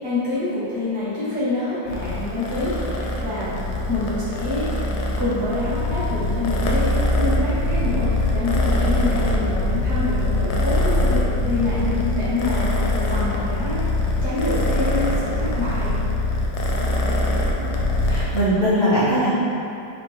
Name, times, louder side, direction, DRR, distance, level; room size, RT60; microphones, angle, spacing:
voice 1, 0.0-3.6 3.9-4.7 5.2-11.8 12.1-13.8 14.2-15.9, left 2 dB, 20° left, -13 dB, 0.6 m, -26 dB
Purr, 1.9-18.4, left 1 dB, 70° left, 1.0 m, -23 dB
voice 2, 18.1-19.3, equal, 35° right, -12 dB, 0.9 m, -20 dB
4.2 x 3.4 x 3.5 m, 2.7 s
omnidirectional pair, 2.1 m